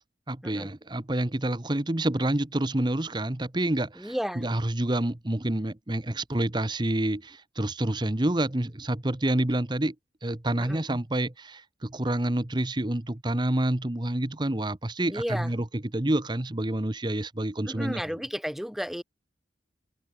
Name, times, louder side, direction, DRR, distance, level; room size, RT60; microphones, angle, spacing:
voice 1, 0.3-9.9 10.2-18.2, right 1 dB, 25° right, 1.0 m, -28 dB
voice 2, 4.0-4.5 10.6-10.8 15.1-15.5 17.7-19.0, equal, ahead, 4.3 m, -33 dB
head